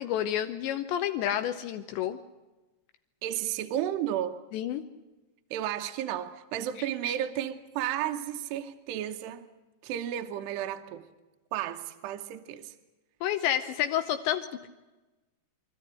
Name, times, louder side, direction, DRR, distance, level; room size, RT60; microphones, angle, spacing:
voice 1, 0.0-2.2 4.5-4.8 13.2-14.7, left 11 dB, 75° left, 2.9 m, -29 dB
voice 2, 3.2-4.4 5.5-9.5 9.8-11.1 11.5-12.7, right 11 dB, 70° right, 3.0 m, -33 dB
25.0 x 14.0 x 10.0 m
omnidirectional pair, 5.4 m